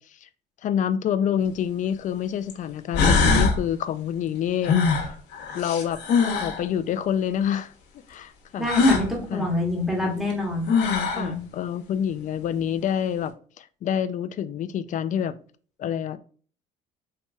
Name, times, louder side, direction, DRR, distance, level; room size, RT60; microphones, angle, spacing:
voice 1, 0.6-4.8 5.5-6.0 6.3-7.7 8.1-8.7 9.3-9.5 10.0-10.3 11.1-15.3 15.8-16.2, left 9 dB, 50° left, 13 dB, 0.4 m, -27 dB
sound 1, 1.4-1.5 2.5-2.6 2.9-3.6 4.6-6.6 8.6-9.1 10.3-10.4 10.7-11.3, left 4 dB, 85° left, 1.1 m, -21 dB
voice 2, 8.6-10.7 11.1-11.4, left 1 dB, ahead, -2 dB, 1.3 m, -27 dB
4.3 x 2.9 x 2.3 m, 0.42 s
cardioid pair, 110°, 17 cm